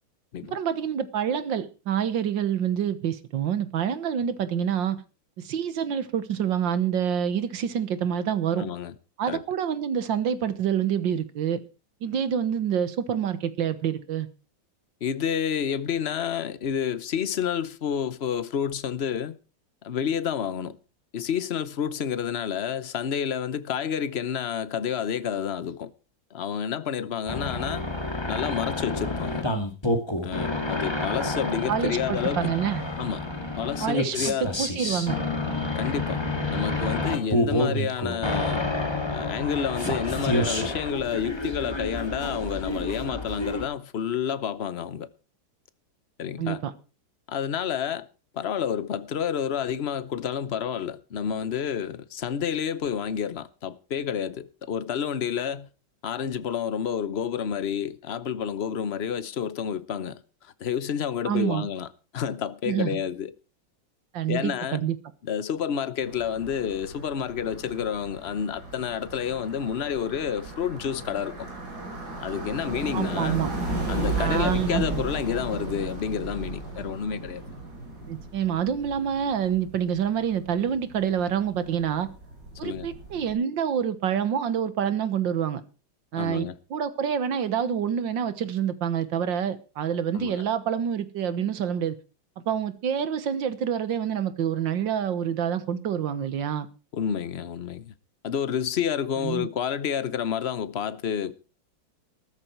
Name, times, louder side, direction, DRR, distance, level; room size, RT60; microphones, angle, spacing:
voice 1, 0.4-5.0 5.4-8.7 9.2-11.6 12.0-14.3 31.7-32.8 33.8-35.2 46.4-46.7 61.3-61.7 62.7-63.0 64.1-65.0 72.9-73.5 74.2-75.0 78.1-82.1 82.6-85.6 86.1-92.0 92.5-96.7 99.2-99.5, right 8 dB, 75° right, 1.9 m, -27 dB
voice 2, 8.6-8.9 9.3-9.4 15.0-19.4 19.8-20.8 21.1-25.9 26.3-27.8 28.3-29.4 30.2-32.5 33.0-33.3 33.6-34.5 35.7-36.2 36.5-38.7 39.1-45.1 46.2-46.6 47.3-48.1 48.3-55.7 56.0-61.9 62.1-63.3 64.3-64.8 65.2-71.5 72.2-73.4 73.9-77.4 82.6-82.9 86.1-86.5 90.1-90.4 96.9-97.9 98.2-101.3, left 8 dB, 45° left, 0.8 m, -29 dB
sound 1, 27.3-43.7, left 1 dB, 15° left, 2.0 m, -29 dB
sound 2, 66.0-83.3, right 2 dB, 55° right, 6.1 m, -35 dB
14.0 x 13.5 x 4.5 m
omnidirectional pair, 2.1 m